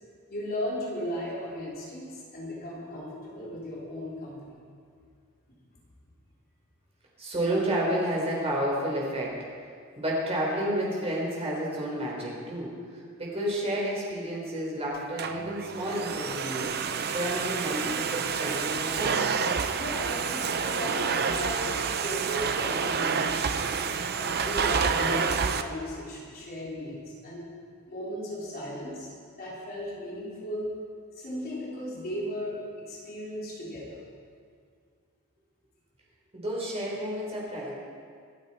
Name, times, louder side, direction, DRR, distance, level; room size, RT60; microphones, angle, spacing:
voice 1, 0.3-4.6 19.8-21.8 22.0-23.6 24.1-27.5 27.9-29.1 29.4-30.7 31.1-34.0, equal, 45° left, -6 dB, 3.5 m, -36 dB
voice 2, 7.2-9.3 10.0-19.3 36.3-37.7, right 1 dB, 30° right, -4 dB, 4.3 m, -31 dB
Domestic sounds home sounds, 14.9-25.6, right 6 dB, 45° right, 0.7 m, -28 dB
25.5 x 9.0 x 4.4 m, 2.1 s
head